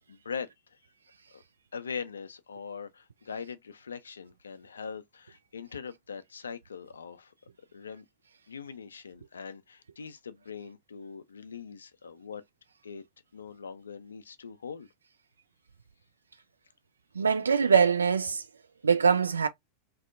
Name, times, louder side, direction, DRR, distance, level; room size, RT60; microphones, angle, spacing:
voice 1, 0.1-0.5 1.3-1.4 1.7-7.3 7.7-8.0 8.5-12.4 12.8-13.0 13.3-14.9, left 6 dB, 70° left, 0.3 m, -41 dB
voice 2, 17.2-18.4 18.8-19.5, right 6 dB, 75° right, 0.3 m, -23 dB
2.6 x 2.1 x 2.4 m
figure-of-eight pair, 90°, 0 cm